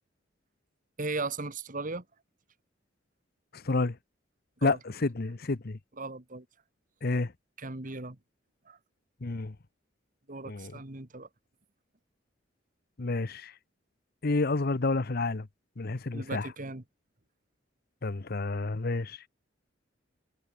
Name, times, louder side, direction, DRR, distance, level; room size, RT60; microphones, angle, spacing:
voice 1, 1.0-2.0 4.6-4.8 6.0-6.5 7.6-8.2 8.7-8.8 10.3-11.3 16.1-16.8, right 3 dB, 45° right, 2.0 m, -37 dB
voice 2, 3.5-4.0 4.6-5.8 7.0-7.3 9.2-9.6 10.4-10.7 13.0-13.5 14.2-15.5 15.8-16.5 18.0-19.2, left 3 dB, 50° left, 0.9 m, -30 dB
head